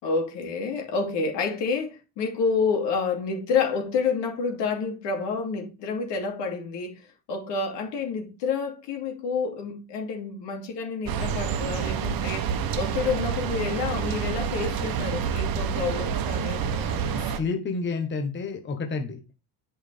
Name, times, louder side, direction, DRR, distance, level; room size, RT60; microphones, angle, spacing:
voice 1, 0.0-17.3, left 5 dB, 80° left, 2.7 m, -29 dB
sound 1, 11.0-17.4, right 7 dB, 55° right, 1.1 m, -28 dB
voice 2, 17.1-19.2, left 4 dB, 25° left, 1.1 m, -30 dB
8.9 x 5.6 x 3.4 m
cardioid pair, 145°, 42 cm